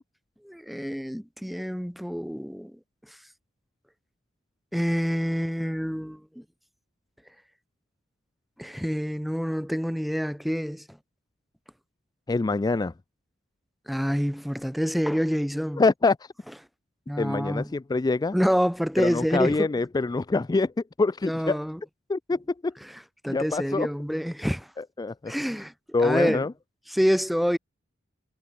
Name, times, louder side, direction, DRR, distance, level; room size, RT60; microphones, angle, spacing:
voice 1, 0.4-2.8 4.7-6.4 8.6-10.8 13.9-15.8 17.1-17.7 18.3-19.7 21.2-21.8 23.2-24.7 25.3-25.7 26.0-26.4 26.9-27.6, equal, ahead, 1.9 m, -27 dB
voice 2, 12.3-12.9 15.8-16.3 17.2-18.4 19.0-20.7 21.0-21.6 22.1-22.7 23.3-23.9 25.0-25.3 25.9-26.5, left 3 dB, 20° left, 0.3 m, -25 dB
head